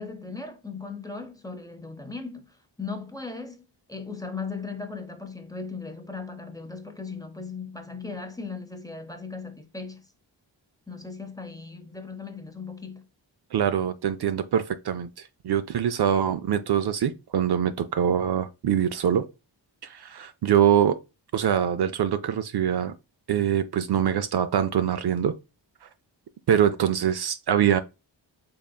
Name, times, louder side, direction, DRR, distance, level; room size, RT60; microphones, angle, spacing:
voice 1, 0.0-10.1 10.9-13.1, left 4 dB, 10° left, 0.7 m, -38 dB
voice 2, 13.5-19.3 19.8-21.0 21.3-22.9 23.3-25.3 26.5-27.8, right 9 dB, 60° right, 0.5 m, -24 dB
3.7 x 3.3 x 2.3 m
wide cardioid pair, 70°, 44 cm